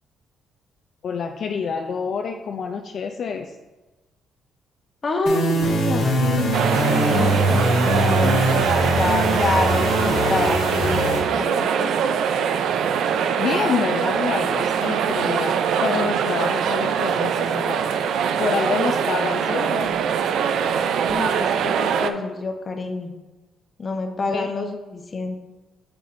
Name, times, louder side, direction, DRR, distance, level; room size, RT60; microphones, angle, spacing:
voice 1, 1.0-3.5 13.4-19.9 24.3-24.5, left 6 dB, 60° left, 4 dB, 0.4 m, -27 dB
voice 2, 5.0-12.0 21.1-23.1 23.8-25.4, left 3 dB, 35° left, 4 dB, 0.9 m, -27 dB
sound 1, 5.3-11.2, right 1 dB, 90° left, 1.9 m, -22 dB
sound 2, 6.5-22.1, right 7 dB, 75° right, 0.4 m, -23 dB
7.0 x 6.9 x 2.6 m, 1.1 s
cardioid pair, 90°, 0 cm